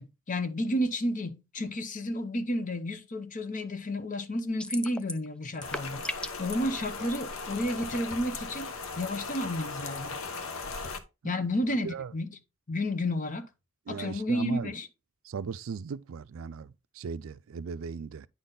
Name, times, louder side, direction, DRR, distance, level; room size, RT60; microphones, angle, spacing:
voice 1, 0.0-8.7 9.0-10.2 11.2-12.4 12.7-13.5 13.9-14.9, left 1 dB, 40° left, 0.9 m, -31 dB
sound 1, 4.6-5.3 5.5-6.6, left 1 dB, 5° left, 0.4 m, -35 dB
Rain, 5.6-11.0, left 4 dB, 80° left, 1.0 m, -38 dB
voice 2, 13.9-14.7 15.3-18.3, right 6 dB, 70° right, 0.4 m, -37 dB
9.4 x 4.1 x 3.8 m
head